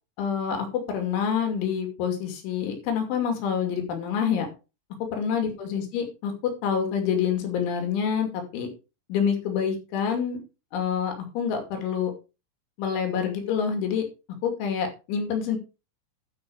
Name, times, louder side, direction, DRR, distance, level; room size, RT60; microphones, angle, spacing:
voice 1, 0.2-4.5 5.1-8.7 9.1-10.4 10.7-12.1 12.8-14.1 14.4-15.6, left 7 dB, 85° left, 4 dB, 5.0 m, -27 dB
12.5 x 6.0 x 4.8 m, 0.30 s
omnidirectional pair, 5.3 m